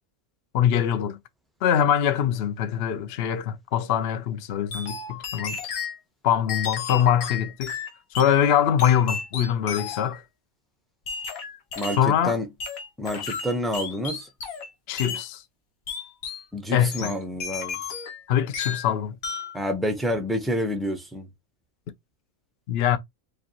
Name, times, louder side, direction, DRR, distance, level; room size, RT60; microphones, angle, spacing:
voice 1, 0.5-1.2 1.6-5.6 6.2-7.7 8.1-10.2 12.0-12.4 14.9-15.4 16.7-17.1 18.3-19.2 22.7-23.0, left 9 dB, 60° left, 0.7 m, -23 dB
sound 1, 4.7-6.0 6.5-8.4 8.8-10.2 11.1-12.1 12.6-14.7 15.0-15.3 15.9-16.5 16.9-18.2 18.5-18.9 19.2-19.6, left 6 dB, 75° left, 1.5 m, -33 dB
voice 2, 11.8-12.5 13.0-14.3 16.5-17.8 19.5-21.3, equal, ahead, 0.3 m, -28 dB
5.0 x 2.4 x 2.8 m
omnidirectional pair, 1.5 m